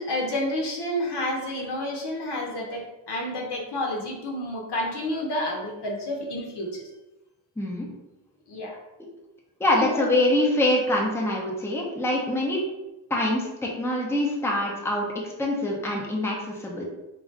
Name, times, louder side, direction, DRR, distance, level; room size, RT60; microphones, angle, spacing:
voice 1, 0.0-6.9 8.5-8.8 9.8-10.1, left 1 dB, 60° left, 0 dB, 0.9 m, -30 dB
voice 2, 7.6-7.9 9.6-12.6 13.1-16.8, left 1 dB, 5° left, -2 dB, 0.7 m, -25 dB
3.1 x 2.4 x 3.9 m, 1.0 s
cardioid pair, 80°, 46 cm